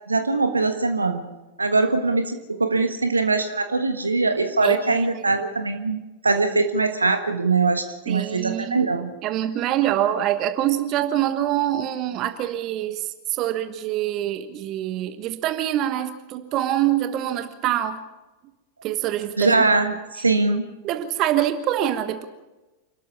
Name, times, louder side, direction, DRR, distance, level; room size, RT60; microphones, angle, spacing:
voice 1, 0.1-1.2 1.6-9.1 19.4-20.7, right 3 dB, 80° right, 7 dB, 1.4 m, -22 dB
voice 2, 4.6-5.1 8.1-8.8 9.2-18.0 18.8-19.7 20.8-22.2, right 12 dB, 35° right, 10 dB, 1.3 m, -25 dB
28.5 x 13.0 x 7.1 m, 1.1 s
figure-of-eight pair, 90°, 0 cm